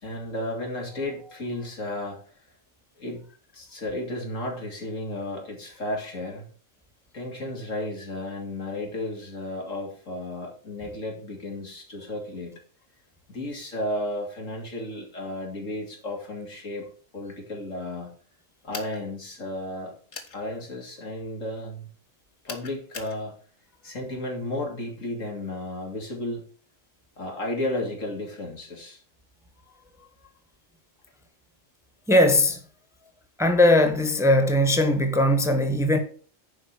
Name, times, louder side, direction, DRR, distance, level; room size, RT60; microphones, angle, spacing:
voice 1, 0.0-2.2 3.0-3.2 3.5-6.4 7.1-12.5 13.3-16.9 17.1-18.1 18.6-19.9 20.3-21.9 22.4-23.4 23.8-26.4 27.2-29.0, left 1 dB, 80° left, 3.4 m, -33 dB
sound 1, 18.7-19.0 20.1-20.4 22.5-23.2, left 4 dB, 65° left, 1.8 m, -39 dB
voice 2, 32.1-32.6 33.4-36.0, left 1 dB, ahead, 1.2 m, -19 dB
11.0 x 4.8 x 7.2 m
omnidirectional pair, 1.3 m